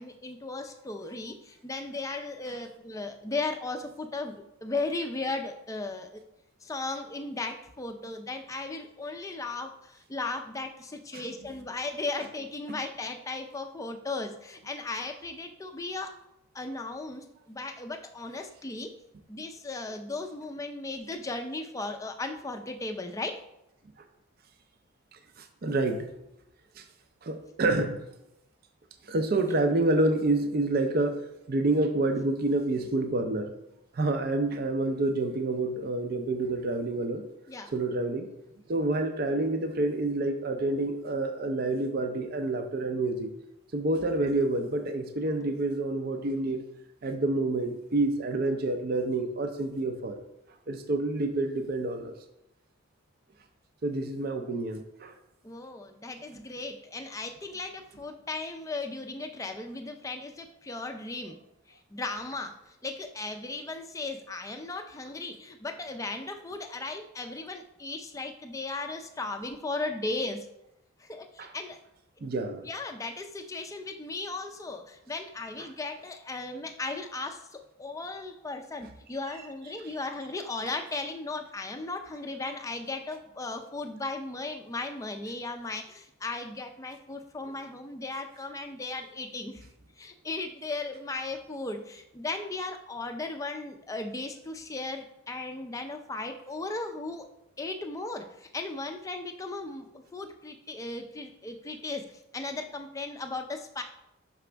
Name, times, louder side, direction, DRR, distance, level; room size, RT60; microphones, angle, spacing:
voice 1, 0.0-6.2 6.6-16.2 16.5-18.9 19.3-23.4 37.5-37.7 55.4-61.4 61.7-70.5 71.0-71.8 72.2-72.3 72.6-89.7 90.0-97.3 97.6-103.8, left 3 dB, 15° left, 5 dB, 0.4 m, -36 dB
voice 2, 25.1-26.1 26.8-26.9 27.2-28.0 29.0-33.5 33.9-37.2 37.7-38.3 38.7-43.3 43.7-46.6 47.0-50.2 50.7-52.1 53.8-55.1 71.4-71.5 72.2-72.6, right 2 dB, 45° right, 6 dB, 0.4 m, -28 dB
6.0 x 5.1 x 3.3 m, 0.85 s
head